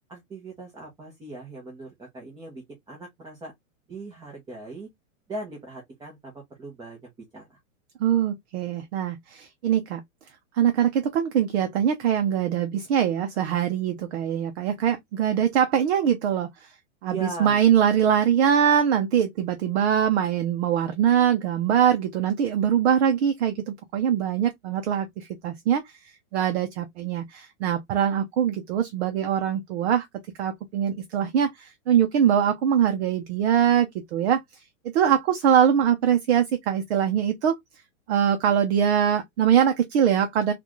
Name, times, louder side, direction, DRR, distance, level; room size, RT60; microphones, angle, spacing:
voice 1, 0.1-3.5 3.9-4.9 5.3-7.6 17.0-17.6, right 3 dB, 10° right, 0.9 m, -39 dB
voice 2, 8.0-10.0 10.5-16.7 17.0-26.0 26.3-30.1 30.4-34.4 34.9-37.6 38.1-40.5, right 9 dB, 50° right, 0.8 m, -23 dB
3.8 x 2.5 x 3.0 m
supercardioid pair, 155°, 41 cm